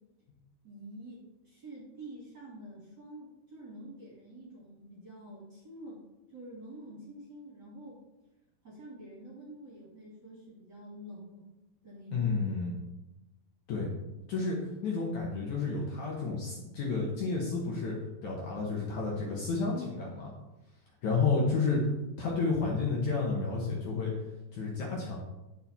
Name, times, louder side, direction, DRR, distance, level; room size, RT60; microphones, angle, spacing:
voice 1, 0.6-6.0 6.3-8.0 8.6-11.5 11.8-12.3, right 1 dB, 30° right, -6 dB, 2.7 m, -47 dB
voice 2, 12.1-12.8 13.7-13.9 14.3-14.6 14.8-18.0 18.2-20.3 21.0-21.8 22.2-24.1 24.5-25.2, left 4 dB, 60° left, -3 dB, 2.4 m, -31 dB
10.0 x 6.8 x 4.3 m, 0.97 s
omnidirectional pair, 4.5 m